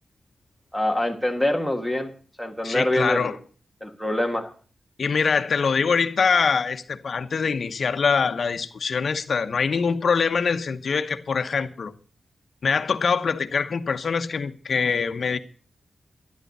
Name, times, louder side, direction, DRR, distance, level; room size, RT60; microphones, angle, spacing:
voice 1, 0.7-2.1 2.4-3.3 3.8-4.5, left 1 dB, ahead, 1.5 m, -25 dB
voice 2, 2.6-3.4 5.0-11.9 12.6-15.4, left 5 dB, 60° left, 0.9 m, -24 dB
12.0 x 11.0 x 5.4 m
wide cardioid pair, 165°, 0 cm